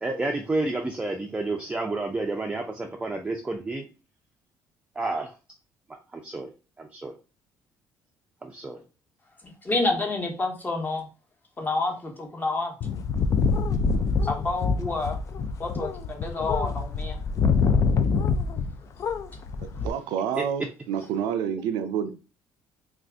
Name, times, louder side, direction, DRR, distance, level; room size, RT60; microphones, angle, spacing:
voice 1, 0.0-3.9 5.0-5.3 6.1-6.5 6.8-7.1 8.4-8.8 20.4-20.5, right 2 dB, 15° right, 0.4 m, -30 dB
voice 2, 9.6-11.1 11.6-12.7 14.2-15.2 15.6-17.2, left 3 dB, 25° left, 1.0 m, -28 dB
sound 1, 12.8-18.7 19.0-19.9, left 5 dB, 50° left, 0.3 m, -25 dB
voice 3, 19.6-22.1, right 8 dB, 85° right, 0.4 m, -29 dB
2.5 x 2.4 x 3.4 m
cardioid pair, 90°, 7 cm